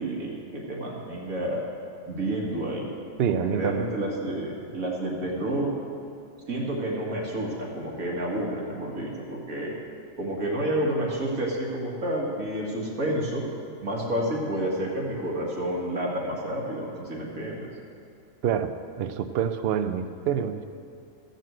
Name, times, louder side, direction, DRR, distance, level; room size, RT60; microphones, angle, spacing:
voice 1, 0.0-1.6 2.1-2.9 3.3-5.7 6.5-9.7 10.2-13.4 13.8-17.7, right 1 dB, 85° right, -3 dB, 2.5 m, -30 dB
voice 2, 3.2-3.9 18.4-18.7 19.0-20.6, right 8 dB, 55° right, 10 dB, 0.8 m, -26 dB
14.0 x 6.7 x 7.7 m, 2.4 s
omnidirectional pair, 1.4 m